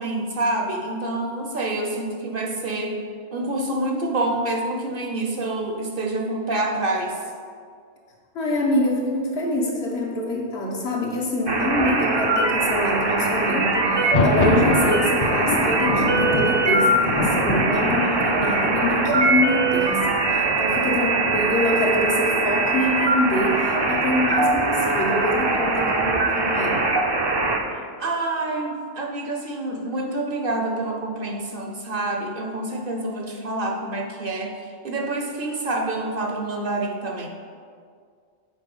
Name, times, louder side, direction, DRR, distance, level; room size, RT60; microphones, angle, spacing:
voice 1, 0.0-3.0 3.3-7.2 27.8-34.5 34.8-37.3, right 2 dB, 55° right, 2 dB, 0.9 m, -27 dB
voice 2, 8.3-26.8, left 1 dB, 65° left, -1 dB, 1.4 m, -25 dB
sound 1, 11.5-27.6, right 3 dB, 35° right, 0.4 m, -22 dB
Thunder, 13.9-21.6, left 1 dB, 40° left, 0.8 m, -26 dB
7.3 x 4.5 x 5.3 m, 2.1 s
omnidirectional pair, 1.2 m